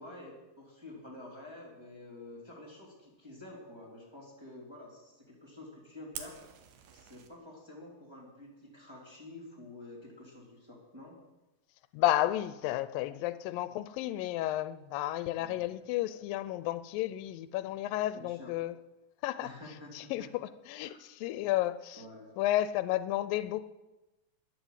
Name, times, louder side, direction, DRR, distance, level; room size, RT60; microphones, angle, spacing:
voice 1, 0.0-6.4 6.9-11.1 15.4-15.7 18.1-18.5 19.4-20.3 20.8-21.0 22.0-22.3, left 2 dB, 10° right, -3 dB, 3.0 m, -49 dB
Fire, 6.1-7.3, right 8 dB, 85° right, 2.9 m, -46 dB
voice 2, 11.9-18.8 19.2-19.5 20.0-22.0 22.4-23.6, left 14 dB, 85° left, 15 dB, 2.3 m, -32 dB
11.5 x 10.0 x 8.1 m, 1.0 s
omnidirectional pair, 4.0 m